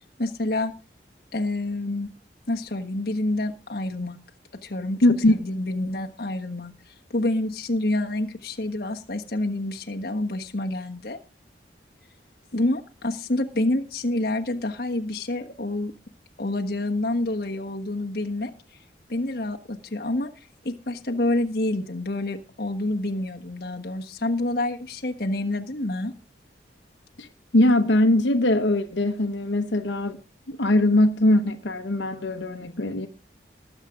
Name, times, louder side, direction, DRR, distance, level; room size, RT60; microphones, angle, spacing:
voice 1, 0.2-0.7 1.3-2.1 2.5-4.2 4.6-5.0 5.3-6.7 7.1-11.2 12.5-15.9 16.4-18.5 19.1-20.3 20.6-26.1, left 1 dB, 55° left, 1.3 m, -28 dB
voice 2, 5.0-5.3 27.2-27.3 27.5-30.2 30.5-33.1, left 1 dB, 85° left, 1.0 m, -21 dB
20.0 x 7.3 x 3.7 m
head